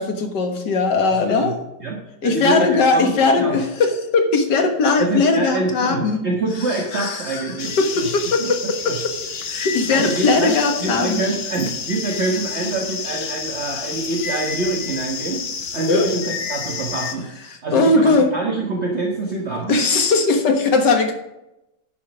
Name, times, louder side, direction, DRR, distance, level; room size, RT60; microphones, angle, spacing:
voice 1, 0.0-1.5 2.2-6.2 6.9-7.4 7.8-7.9 8.1-8.6 8.9-9.0 9.5-11.2 15.9-16.1 17.7-18.3 19.7-21.1, left 3 dB, 65° left, 5 dB, 2.0 m, -18 dB
voice 2, 1.1-1.5 1.8-3.6 5.0-8.1 8.4-9.0 9.6-15.4 15.7-17.3 17.6-19.8, right 2 dB, 40° right, -1 dB, 1.5 m, -25 dB
sound 1, 7.6-17.1, left 5 dB, 45° left, 0.8 m, -29 dB
11.0 x 6.3 x 6.0 m, 0.89 s
omnidirectional pair, 2.0 m